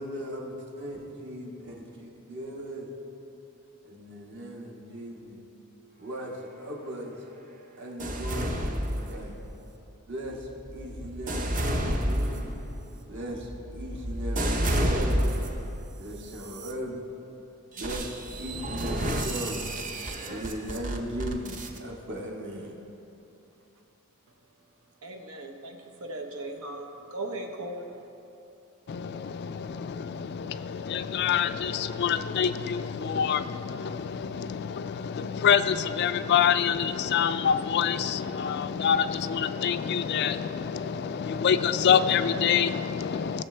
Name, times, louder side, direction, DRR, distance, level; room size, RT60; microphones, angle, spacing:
voice 1, 0.0-2.9 3.8-5.4 6.0-7.2 7.8-9.4 10.1-12.5 13.1-15.3 16.0-17.0 17.8-19.6 20.2-22.7, right 1 dB, 55° right, -2 dB, 1.5 m, -38 dB
sound 1, 8.0-9.6 10.2-15.7 16.3-16.7 17.8-21.8, equal, 35° right, 0.7 m, -30 dB
voice 2, 25.0-28.1, right 1 dB, 90° right, 3 dB, 1.0 m, -38 dB
voice 3, 28.9-43.4, left 7 dB, 50° left, 12 dB, 0.3 m, -26 dB
17.0 x 6.7 x 3.3 m, 2.9 s
head